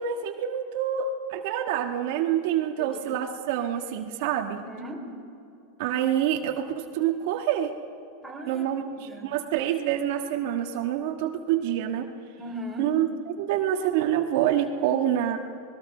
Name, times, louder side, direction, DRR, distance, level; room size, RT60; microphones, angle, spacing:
voice 1, 0.0-4.6 5.8-7.7 8.5-8.8 9.2-12.1 12.8-13.1 13.4-15.4, right 10 dB, 60° right, 3 dB, 1.5 m, -26 dB
voice 2, 4.4-5.0 8.2-9.3 12.4-12.9, right 1 dB, ahead, -2 dB, 3.8 m, -38 dB
25.5 x 20.5 x 5.6 m, 2.6 s
supercardioid pair, 140°, 0 cm